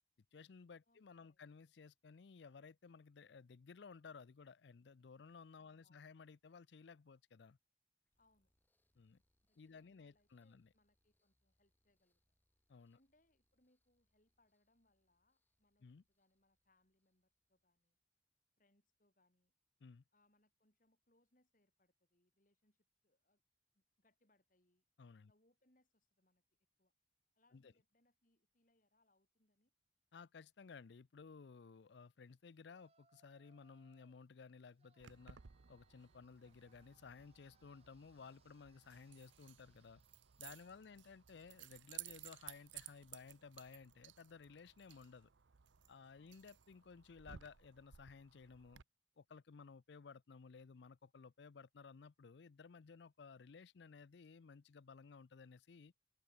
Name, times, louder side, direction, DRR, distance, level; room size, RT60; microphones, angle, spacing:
voice 1, 0.3-7.6 9.0-9.2 9.6-10.7 12.7-13.0 15.8-16.0 19.8-20.0 25.0-25.3 27.5-27.7 30.1-35.4 35.7-40.0 40.4-45.3 45.9-48.8 49.2-55.9, left 5 dB, 70° left, 0.5 m, -57 dB
voice 2, 0.9-1.4 5.6-6.1 8.2-8.5 9.5-12.2 12.9-18.0 18.6-19.5 20.1-23.4 23.7-24.8 25.3-26.4 26.8-26.9 27.3-29.7 36.4-36.7 40.6-41.1 46.1-46.4, left 2 dB, 45° left, 4.7 m, -79 dB
sound 1, 8.0-18.0, left 1 dB, 10° left, 4.1 m, -89 dB
Yell, 32.7-34.2 34.8-41.5, right 4 dB, 35° right, 1.6 m, -78 dB
Keys jangling, 35.0-48.8, right 12 dB, 85° right, 0.7 m, -58 dB
head